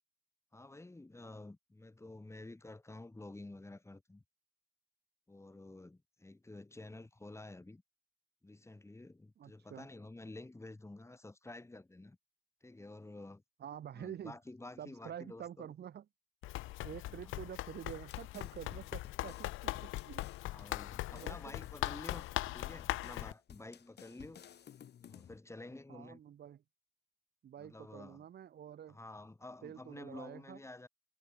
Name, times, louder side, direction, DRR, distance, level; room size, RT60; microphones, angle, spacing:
voice 1, 0.5-4.2 5.3-7.8 8.4-12.2 12.6-13.4 13.9-15.7 17.1-17.3 20.4-24.6 25.0-26.2 27.6-28.2 28.9-30.9, left 2 dB, 15° left, 3.0 m, -51 dB
voice 2, 9.4-9.9 13.6-14.4 14.8-16.0 16.8-20.2 21.1-21.6 25.9-26.6 27.4-29.0 29.6-30.6, right 9 dB, 55° right, 1.3 m, -48 dB
Run, 16.4-23.3, left 17 dB, 90° left, 0.7 m, -40 dB
sound 1, 17.9-25.4, left 9 dB, 55° left, 2.1 m, -56 dB
cardioid pair, 90°, 20 cm